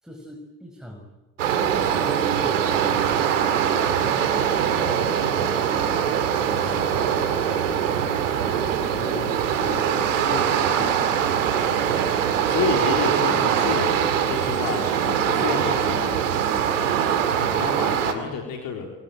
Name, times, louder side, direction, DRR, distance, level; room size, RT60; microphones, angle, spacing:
voice 1, 0.0-1.0 1.5-2.5, equal, ahead, 1 dB, 6.0 m, -38 dB
sound 1, 1.4-18.1, right 8 dB, 85° right, 2.4 m, -22 dB
voice 2, 6.4-7.2 8.8-11.2 12.4-16.2 17.5-18.9, left 6 dB, 65° left, 2 dB, 3.9 m, -31 dB
25.5 x 25.0 x 9.1 m, 1.2 s
hypercardioid pair, 50°, 37 cm